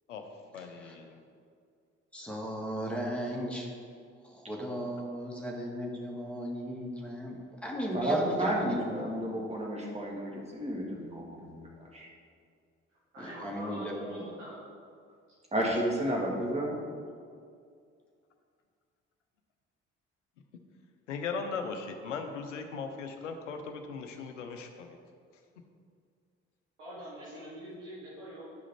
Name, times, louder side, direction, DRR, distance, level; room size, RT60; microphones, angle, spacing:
voice 1, 0.5-1.2 21.1-25.0, left 5 dB, 80° left, 5 dB, 0.7 m, -38 dB
voice 2, 2.1-3.7 4.2-9.0 13.2-14.2, equal, 5° left, -2 dB, 1.7 m, -36 dB
voice 3, 7.9-11.7 11.9-12.1 15.5-16.8, right 1 dB, 15° right, -2 dB, 1.8 m, -31 dB
voice 4, 13.1-14.6 26.8-28.5, equal, 80° right, -8 dB, 1.5 m, -44 dB
10.5 x 5.0 x 4.1 m, 2.2 s
figure-of-eight pair, 45°, 37 cm